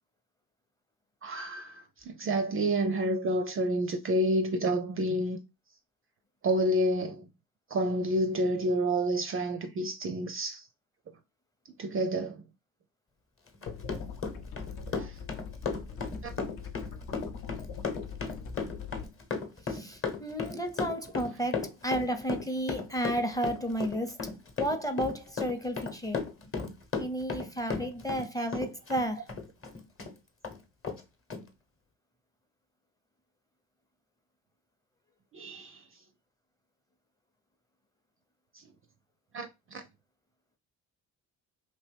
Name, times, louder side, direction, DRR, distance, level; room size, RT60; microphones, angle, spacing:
voice 1, 1.2-5.4 6.4-7.3 7.7-10.7 11.8-12.4 14.9-15.2 16.2-16.3 35.3-35.8 39.3-39.8, right 1 dB, 30° right, 0.4 m, -29 dB
Run, 13.5-28.3 28.5-30.1 30.4-30.6 30.8-31.0 31.3-31.4, left 4 dB, 30° left, 1.0 m, -35 dB
sound 1, 13.7-19.1, left 6 dB, 55° left, 0.7 m, -42 dB
voice 2, 19.7-24.2 24.6-26.2 27.0-29.3, equal, 10° left, 0.6 m, -32 dB
2.9 x 2.6 x 3.3 m
hypercardioid pair, 60°, 43 cm